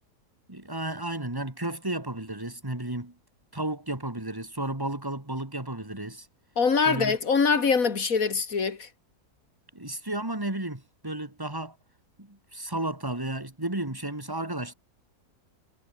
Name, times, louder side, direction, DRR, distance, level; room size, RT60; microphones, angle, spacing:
voice 1, 0.5-3.1 3.5-6.3 6.8-7.2 9.7-11.8 12.2-14.7, right 1 dB, 15° right, 2.9 m, -33 dB
voice 2, 6.6-8.9, left 5 dB, 55° left, 2.7 m, -23 dB
omnidirectional pair, 1.8 m